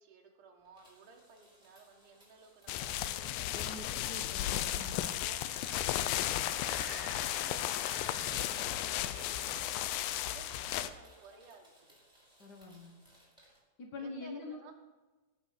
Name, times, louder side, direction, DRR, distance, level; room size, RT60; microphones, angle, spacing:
voice 1, 0.0-3.3 3.8-4.7 5.0-11.9 14.0-14.7, right 4 dB, 65° right, 2 dB, 3.2 m, -57 dB
sound 1, 0.6-13.6, equal, ahead, 4.9 m, -64 dB
sound 2, 2.7-10.9, left 13 dB, 85° left, 2.4 m, -34 dB
sound 3, 3.4-11.0, right 3 dB, 50° right, 4.0 m, -51 dB
voice 2, 3.5-5.2 12.4-13.0 13.8-14.7, left 2 dB, 60° left, 2 dB, 1.0 m, -46 dB
18.5 x 6.5 x 6.8 m, 1.2 s
omnidirectional pair, 4.0 m